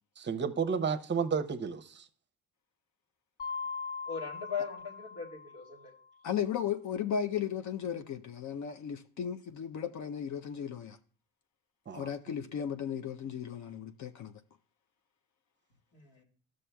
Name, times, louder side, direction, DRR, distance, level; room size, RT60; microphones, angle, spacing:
voice 1, 0.2-2.1 11.9-12.1, right 6 dB, 30° right, 0.7 m, -32 dB
Mallet percussion, 3.4-6.0, left 5 dB, 25° left, 1.1 m, -40 dB
voice 2, 4.1-5.9 15.9-16.2, left 6 dB, 85° left, 2.2 m, -39 dB
voice 3, 6.2-11.0 11.9-14.3, left 8 dB, 50° left, 0.5 m, -35 dB
13.5 x 6.4 x 2.2 m
cardioid pair, 95°, 37 cm